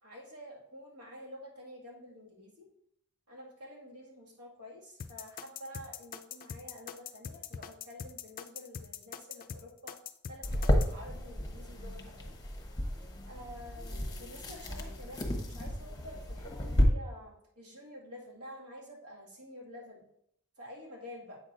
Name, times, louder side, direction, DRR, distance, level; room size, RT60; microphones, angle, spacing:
voice 1, 0.0-2.7 3.3-10.0 10.3-12.3 13.3-20.1 20.6-21.4, equal, 85° right, -3 dB, 2.1 m, -49 dB
sound 1, 5.0-10.9, left 7 dB, 40° left, 0.4 m, -42 dB
sound 2, 10.4-16.8, equal, 15° left, 1.0 m, -32 dB
8.0 x 6.2 x 2.6 m, 0.74 s
head